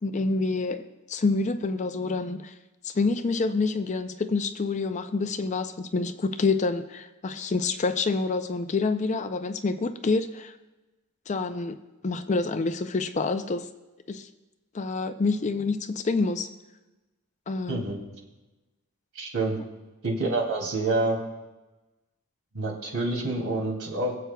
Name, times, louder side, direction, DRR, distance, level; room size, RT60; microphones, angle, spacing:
voice 1, 0.0-2.5 2.8-10.5 11.3-11.8 12.0-13.7 14.1-14.3 14.7-16.5 17.5-17.8, left 3 dB, 30° left, 10 dB, 0.4 m, -27 dB
voice 2, 19.1-19.6 20.0-21.2 22.5-24.1, right 2 dB, 75° right, -1 dB, 2.5 m, -27 dB
23.5 x 7.9 x 2.3 m, 1.1 s
head